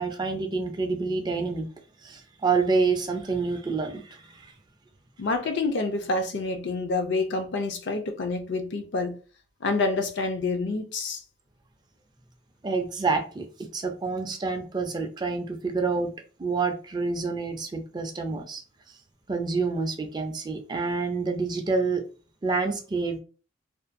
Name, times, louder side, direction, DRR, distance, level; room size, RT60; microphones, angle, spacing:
voice 1, 0.0-1.7 2.0-4.5 12.6-16.1 16.4-18.6 18.9-19.0 19.3-22.0 22.4-23.2, right 4 dB, 20° right, 0.3 m, -28 dB
voice 2, 5.2-9.2 9.6-11.2, left 3 dB, 60° left, 0.4 m, -27 dB
2.5 x 2.2 x 2.4 m
head